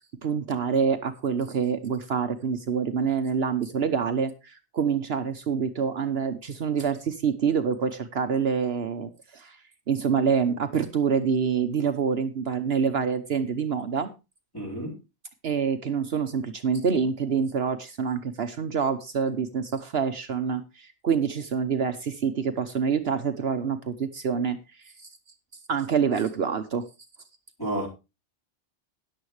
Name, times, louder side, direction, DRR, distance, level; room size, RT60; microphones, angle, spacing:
voice 1, 0.2-9.6 9.9-14.1 15.4-24.6 25.7-26.8, right 6 dB, 65° right, 1.1 m, -26 dB
voice 2, 14.5-15.0 27.6-27.9, right 1 dB, 20° left, 4.1 m, -30 dB
13.5 x 10.0 x 3.2 m
omnidirectional pair, 1.2 m